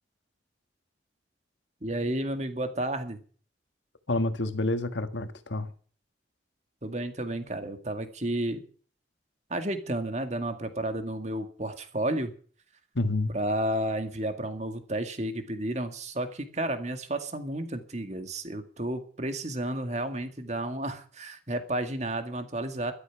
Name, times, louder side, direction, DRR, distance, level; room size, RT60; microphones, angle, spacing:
voice 1, 1.8-3.2 6.8-8.6 9.5-12.3 13.3-22.9, right 1 dB, 40° right, 2.0 m, -32 dB
voice 2, 4.1-5.7 12.9-13.3, left 2 dB, 85° left, 1.6 m, -28 dB
13.0 x 12.5 x 5.9 m
head